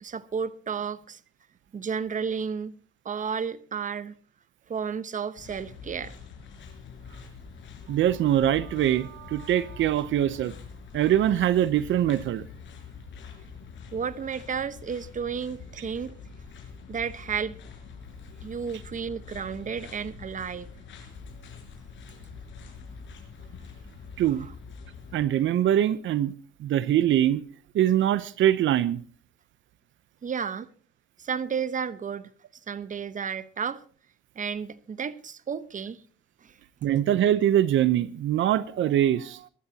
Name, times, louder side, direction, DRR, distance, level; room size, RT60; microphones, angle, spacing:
voice 1, 0.0-1.2 1.7-2.8 3.0-4.1 4.7-6.2 13.9-16.1 16.9-17.6 18.4-20.7 24.4-24.5 30.2-30.7 31.2-32.3 32.7-33.8 34.3-36.0 36.4-36.6, right 6 dB, 40° right, 1.1 m, -32 dB
sound 1, 5.4-25.2, left 5 dB, 70° left, 5.7 m, -45 dB
voice 2, 7.9-10.5 10.9-12.4 24.2-24.5 25.1-26.3 26.6-27.4 27.7-29.0 36.8-39.5, right 11 dB, 75° right, 0.8 m, -23 dB
23.0 x 13.0 x 2.9 m
cardioid pair, 90°, 20 cm